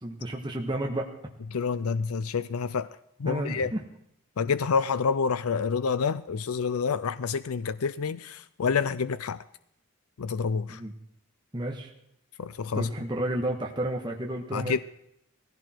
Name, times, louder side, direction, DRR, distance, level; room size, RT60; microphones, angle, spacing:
voice 1, 0.0-1.1 3.2-3.8 10.7-10.9 11.5-11.9 12.7-14.8, right 1 dB, 20° right, 1.5 m, -31 dB
voice 2, 1.5-2.9 3.2-3.7 4.4-9.4 10.2-10.8 12.4-12.9 14.5-14.8, left 5 dB, 75° left, 0.5 m, -28 dB
18.5 x 16.0 x 4.5 m
head